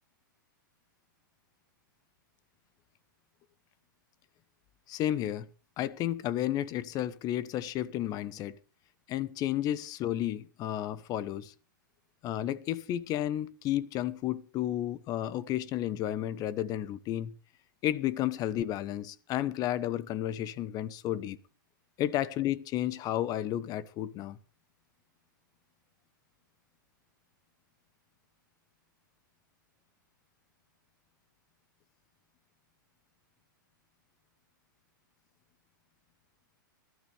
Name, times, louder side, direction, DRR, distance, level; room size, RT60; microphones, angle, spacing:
voice 1, 4.9-5.5 5.8-8.6 9.1-11.5 12.2-17.3 17.8-21.4 22.0-24.4, left 12 dB, 35° left, 1.0 m, -32 dB
20.5 x 13.0 x 3.4 m
hypercardioid pair, 120°, 11 cm